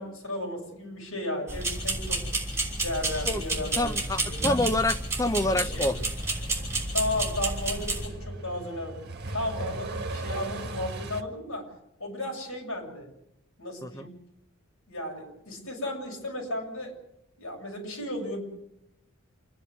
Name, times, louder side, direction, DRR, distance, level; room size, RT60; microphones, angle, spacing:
voice 1, 0.0-2.2 2.8-3.9 4.2-4.6 5.5-5.9 6.9-9.0 9.3-11.7 12.0-13.1 13.6-14.1 14.9-16.9 17.4-18.4, left 1 dB, 70° left, 0 dB, 7.3 m, -34 dB
sound 1, 1.5-8.1, right 2 dB, 15° right, 6.2 m, -30 dB
Truck, 3.7-11.2, right 2 dB, 50° right, 1.7 m, -39 dB
voice 2, 3.8-6.0 13.8-14.1, left 1 dB, 15° left, 11 dB, 0.7 m, -27 dB
28.0 x 10.5 x 9.5 m, 0.82 s
head